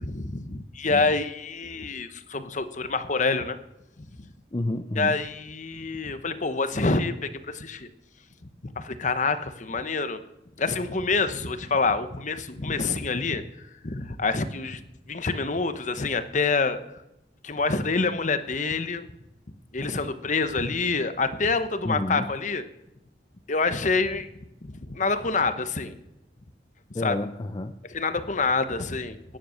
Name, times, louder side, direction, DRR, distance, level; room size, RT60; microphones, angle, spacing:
voice 1, 0.0-3.6 4.2-4.3 5.0-7.9 8.8-10.2 10.6-14.8 15.1-16.8 17.4-19.1 19.7-22.6 23.5-24.3 24.6-26.0 27.0-27.2 27.9-29.4, left 4 dB, 45° left, 11 dB, 1.0 m, -27 dB
voice 2, 4.5-5.2 21.8-22.3 26.9-27.8, left 1 dB, 25° left, 8 dB, 0.5 m, -30 dB
16.5 x 10.0 x 6.5 m, 0.88 s
head